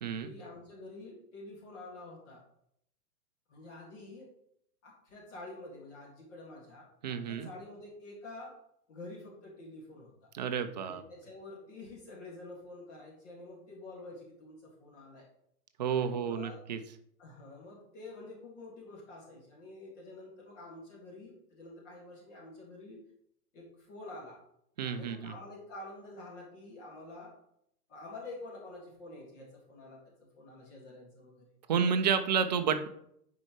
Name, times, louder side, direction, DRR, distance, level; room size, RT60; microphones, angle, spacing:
voice 1, 0.2-2.4 3.5-4.3 4.8-8.5 8.9-10.3 10.8-15.3 15.9-16.6 17.2-23.0 23.5-24.4 24.8-27.3 27.9-30.0 30.4-31.5, left 2 dB, 50° left, -1 dB, 2.0 m, -48 dB
voice 2, 7.0-7.5 10.3-11.0 15.8-16.8 24.8-25.3 31.7-32.9, right 7 dB, 30° right, 9 dB, 0.4 m, -30 dB
9.5 x 4.5 x 3.0 m, 0.73 s
figure-of-eight pair, 115°, 48 cm